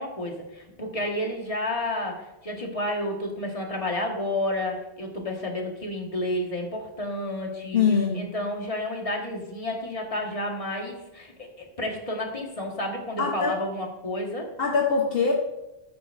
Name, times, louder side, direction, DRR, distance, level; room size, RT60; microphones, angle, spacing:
voice 1, 0.0-7.8 8.1-14.5, left 1 dB, 30° left, 0 dB, 1.7 m, -31 dB
voice 2, 7.7-8.3 13.2-13.5 14.6-15.3, left 5 dB, 60° left, 0 dB, 1.2 m, -23 dB
13.5 x 9.0 x 2.6 m, 0.96 s
omnidirectional pair, 1.1 m